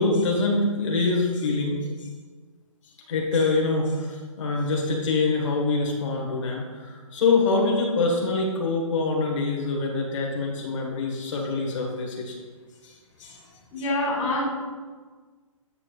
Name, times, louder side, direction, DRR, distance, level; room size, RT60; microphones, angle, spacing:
voice 1, 0.0-2.1 3.1-12.3 12.8-12.9 13.2-13.4, left 3 dB, 65° left, -1 dB, 1.6 m, -25 dB
voice 2, 13.7-14.4, left 2 dB, 25° left, -6 dB, 1.6 m, -25 dB
8.7 x 5.9 x 2.5 m, 1.5 s
hypercardioid pair, 160°, 17 cm